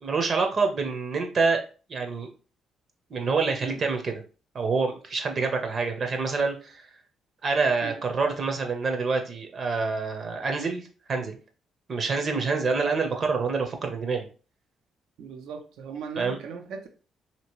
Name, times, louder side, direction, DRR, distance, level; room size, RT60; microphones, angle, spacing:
voice 1, 0.0-1.6 1.9-2.3 3.1-4.1 4.5-6.9 7.4-11.3 11.9-14.3 16.2-16.4, right 4 dB, 50° right, 5 dB, 0.7 m, -26 dB
voice 2, 15.2-16.9, right 5 dB, 85° right, 5 dB, 0.6 m, -38 dB
2.9 x 2.8 x 3.0 m, 0.36 s
cardioid pair, 90°, 0 cm